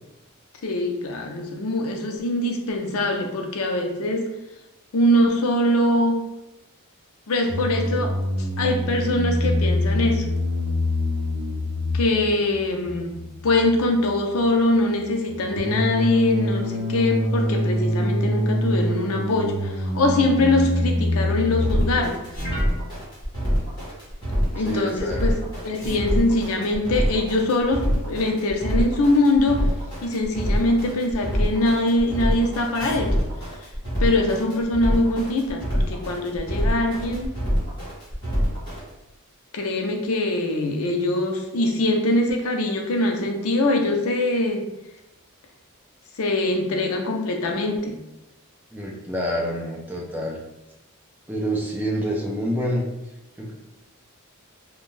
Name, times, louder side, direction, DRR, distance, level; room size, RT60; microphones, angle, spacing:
voice 1, 0.6-4.3 4.9-6.3 7.3-8.2 8.6-10.3 11.9-22.2 24.5-25.4 25.6-29.7 30.0-33.2 34.0-37.4 39.5-44.7 46.2-48.0, left 1 dB, 70° left, 3 dB, 0.5 m, -23 dB
sound 1, 7.5-22.0, left 1 dB, 70° right, 0.5 m, -25 dB
sound 2, 21.6-38.8, equal, 20° left, 1.2 m, -25 dB
voice 2, 24.6-25.4 48.7-50.4 51.3-52.8 53.4-53.5, equal, 10° right, -2 dB, 0.4 m, -27 dB
2.5 x 2.2 x 3.1 m, 0.92 s
head